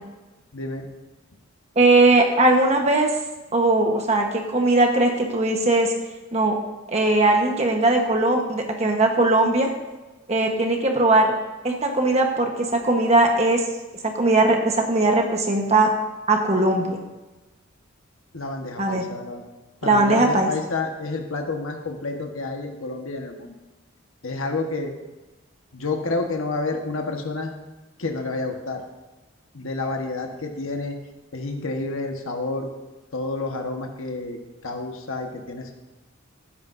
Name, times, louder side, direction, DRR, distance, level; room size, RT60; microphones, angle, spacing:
voice 1, 0.5-0.9 18.3-19.4 19.8-23.5 24.2-24.9 25.7-27.5 28.0-28.8 29.5-30.9 31.3-32.7 33.1-34.4 34.6-35.7, left 3 dB, 75° left, 3 dB, 1.4 m, -29 dB
voice 2, 1.7-3.1 3.5-5.9 6.3-6.6 6.9-9.7 10.3-11.3 11.6-13.6 14.0-15.9 16.3-17.0 18.8-19.0 19.8-20.5, right 2 dB, 30° right, 2 dB, 1.2 m, -19 dB
18.0 x 10.0 x 2.7 m, 1.1 s
head